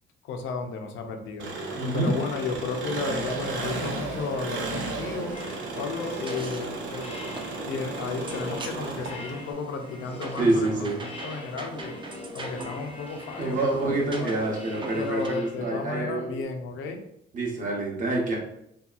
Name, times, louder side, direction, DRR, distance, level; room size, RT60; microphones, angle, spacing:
voice 1, 0.2-5.4 5.8-7.1 7.7-12.0 12.3-14.3 14.9-17.0, left 4 dB, 80° left, 5 dB, 0.5 m, -33 dB
Engine, 1.4-9.5, right 3 dB, 75° right, 0.6 m, -34 dB
voice 2, 1.7-2.1 10.4-11.0 13.4-16.3 17.3-18.4, right 2 dB, 40° right, -2 dB, 0.7 m, -26 dB
sound 1, 4.8-15.3, right 2 dB, 25° right, 0.4 m, -42 dB
sound 2, 5.3-16.4, left 1 dB, 30° left, 0.5 m, -43 dB
2.7 x 2.3 x 2.3 m, 0.75 s
cardioid pair, 90°, 20 cm